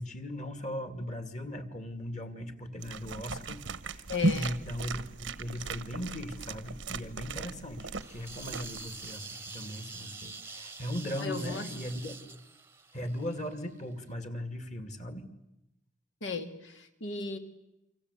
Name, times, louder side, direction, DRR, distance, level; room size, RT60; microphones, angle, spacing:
voice 1, 0.0-12.1 12.9-15.3, equal, 40° left, 9 dB, 2.3 m, -38 dB
sound 1, 2.8-9.1, right 3 dB, 90° right, 1.1 m, -36 dB
voice 2, 4.1-4.6 11.2-11.6 16.2-17.4, left 4 dB, 85° left, 6 dB, 2.6 m, -35 dB
sound 2, 8.0-13.8, right 4 dB, 15° right, 0.9 m, -46 dB
28.0 x 25.0 x 8.2 m, 0.88 s
head